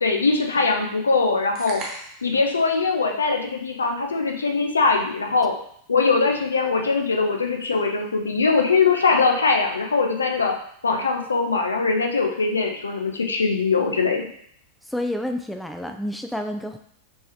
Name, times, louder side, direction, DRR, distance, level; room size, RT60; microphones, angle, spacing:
voice 1, 0.0-1.8 2.2-5.5 5.9-10.5 10.8-14.2, left 4 dB, 75° left, 3 dB, 0.6 m, -21 dB
sound 1, 1.6-2.4, right 2 dB, 35° right, 0.9 m, -36 dB
voice 2, 14.8-16.8, left 1 dB, ahead, 5 dB, 0.3 m, -29 dB
4.6 x 3.1 x 2.8 m, 0.65 s
figure-of-eight pair, 90°, 0 cm